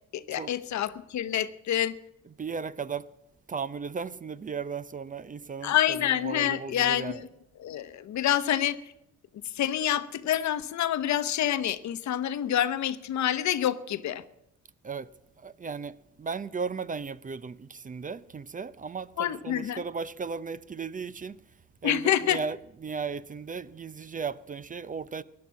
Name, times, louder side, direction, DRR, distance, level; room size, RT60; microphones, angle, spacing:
voice 1, 0.1-1.9 5.6-7.3 7.6-8.8 9.4-14.2 19.2-19.8 21.8-22.4, left 11 dB, 70° left, 0.9 m, -27 dB
voice 2, 2.2-3.1 3.5-7.3 14.8-21.4 21.8-25.2, right 5 dB, 25° right, 0.5 m, -36 dB
16.0 x 10.5 x 7.4 m
cardioid pair, 90°, 30 cm